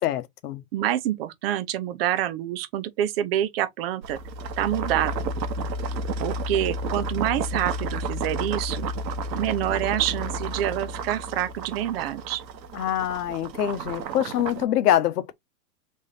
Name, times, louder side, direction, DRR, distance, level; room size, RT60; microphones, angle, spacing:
voice 1, 0.0-0.6 12.7-15.3, left 12 dB, 70° left, 1.1 m, -25 dB
voice 2, 0.7-4.2 4.6-5.2 6.2-8.9 9.3-12.4, right 12 dB, 40° right, 0.7 m, -27 dB
sound 1, 4.0-14.6, right 2 dB, 85° right, 1.1 m, -31 dB
3.6 x 3.2 x 4.1 m
hypercardioid pair, 150°, 49 cm